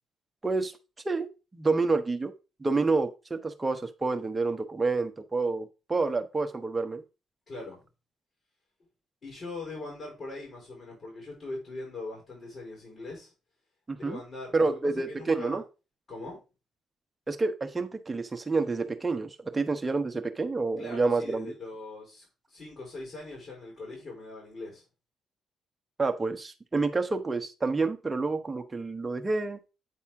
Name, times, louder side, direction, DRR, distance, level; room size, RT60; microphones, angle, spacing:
voice 1, 1.0-2.3 2.6-7.0 13.9-14.2 14.5-15.6 17.3-21.5 26.0-29.6, right 3 dB, 25° right, 6 dB, 1.0 m, -28 dB
voice 2, 7.5-7.9 9.2-13.3 13.9-15.6 16.1-16.4 20.8-24.8, left 2 dB, 50° left, -2 dB, 4.7 m, -41 dB
8.5 x 4.2 x 3.6 m, 0.30 s
cardioid pair, 75°, 0 cm